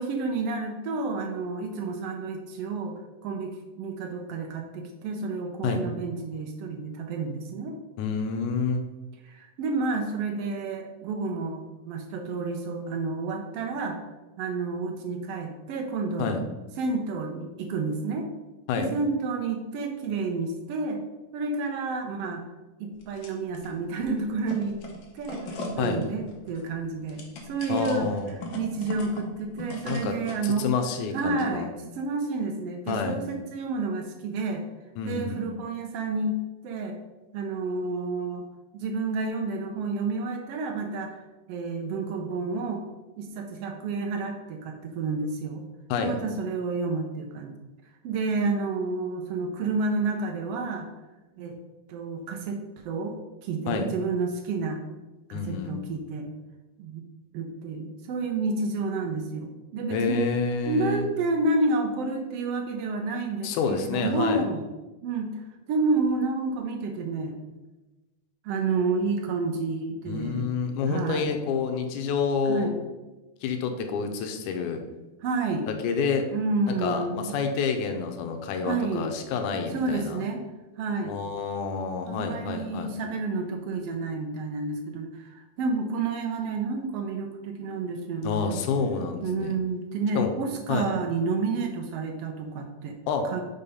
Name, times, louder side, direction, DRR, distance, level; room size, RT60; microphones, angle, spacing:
voice 1, 0.0-2.9 3.2-7.7 9.2-14.0 14.4-16.4 16.8-18.3 18.8-21.0 21.3-22.4 22.8-24.8 25.1-25.4 25.7-28.1 28.5-30.7 31.1-34.6 35.0-36.4 36.6-37.0 37.3-38.4 38.7-41.2 41.5-42.8 43.2-45.6 46.0-47.5 48.0-50.9 51.4-51.6 51.9-54.8 55.3-56.3 56.8-57.0 57.3-60.2 60.7-64.6 65.0-65.3 65.7-67.4 68.4-70.5 70.9-71.3 72.4-72.8 75.2-75.7 76.3-77.4 78.6-79.1 79.7-80.4 80.8-81.1 82.1-88.6 89.2-93.0 93.2-93.4, right 3 dB, 80° right, 3 dB, 1.3 m, -30 dB
voice 2, 8.0-8.8 16.2-16.4 18.7-18.9 25.8-26.0 27.7-28.3 29.9-30.2 30.4-31.7 32.9-33.2 35.0-35.4 45.9-46.2 53.7-53.9 55.3-55.7 59.9-61.1 63.4-64.5 70.1-72.7 73.4-74.8 75.8-76.3 76.7-80.2 81.1-82.9 88.2-89.6 90.2-90.3 90.7-90.9 93.1-93.2, left 5 dB, 85° left, 4 dB, 2.1 m, -28 dB
sound 1, 22.9-23.7 24.0-30.5, left 2 dB, 70° left, 1.1 m, -39 dB
5.6 x 4.4 x 5.3 m, 1.1 s
omnidirectional pair, 3.5 m